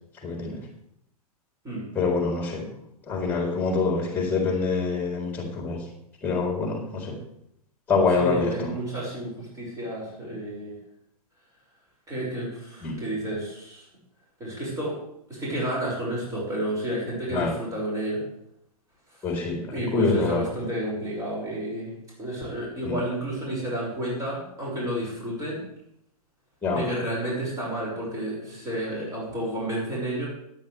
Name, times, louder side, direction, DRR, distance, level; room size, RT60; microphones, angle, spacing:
voice 1, 0.2-0.6 2.0-2.6 3.1-5.8 6.2-7.2 7.9-8.7 12.8-12.9 17.3-17.5 19.2-20.4 22.8-23.0 26.6-26.8, left 4 dB, 10° left, 0 dB, 3.7 m, -25 dB
voice 2, 8.2-10.7 12.1-13.9 14.4-14.9 15.3-18.2 19.7-21.9 22.2-25.6 26.7-30.3, right 1 dB, 15° right, -5 dB, 6.5 m, -31 dB
21.5 x 9.0 x 3.5 m, 0.75 s
figure-of-eight pair, 105°, 20 cm